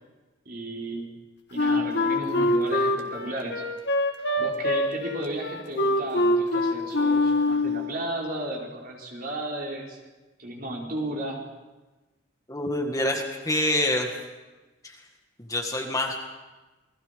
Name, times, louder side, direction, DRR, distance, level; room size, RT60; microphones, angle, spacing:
voice 1, 0.4-1.1 1.5-3.6 4.4-10.0 10.4-11.5, right 1 dB, 50° right, -2 dB, 5.0 m, -34 dB
Wind instrument woodwind instrument, 1.5-7.8, left 1 dB, 60° left, 2.5 m, -24 dB
voice 2, 12.5-14.1 14.8-15.0 15.4-16.2, left 1 dB, 20° left, 2 dB, 2.0 m, -26 dB
28.0 x 21.0 x 5.3 m, 1.2 s
head